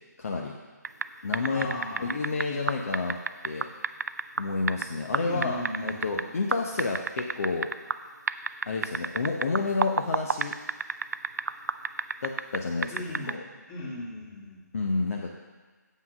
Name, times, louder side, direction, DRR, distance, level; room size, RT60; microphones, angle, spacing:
voice 1, 0.2-0.6 1.2-1.7 2.0-3.2 3.4-3.7 4.4-7.7 8.6-10.5 12.2-12.9 13.3-13.4 14.7-15.3, left 3 dB, 55° left, 0 dB, 0.9 m, -30 dB
sound 1, 0.8-1.1 1.3-4.8 5.1-6.2 6.5-8.0 8.3-12.6 12.8-13.3, right 5 dB, 65° right, 0.4 m, -28 dB
voice 2, 1.5-2.1 5.2-6.3 12.9-13.4 13.7-14.6, left 1 dB, 20° left, -5 dB, 2.2 m, -37 dB
7.7 x 5.7 x 6.2 m, 1.4 s
figure-of-eight pair, 150°, 10 cm